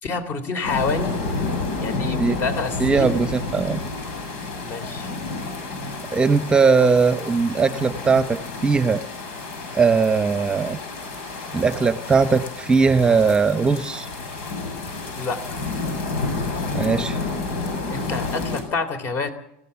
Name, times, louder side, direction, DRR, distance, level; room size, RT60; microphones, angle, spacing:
voice 1, 0.0-1.1 1.8-3.2 4.6-5.1 15.1-15.6 17.9-19.3, left 4 dB, 40° left, 9 dB, 3.4 m, -28 dB
sound 1, 0.6-18.6, left 3 dB, 85° left, 7.6 m, -30 dB
voice 2, 2.8-3.8 6.1-9.0 9.7-10.8 11.5-14.1 16.7-17.2, right 4 dB, 15° right, 11 dB, 0.9 m, -19 dB
26.5 x 16.5 x 7.1 m, 0.82 s
supercardioid pair, 135°, 6 cm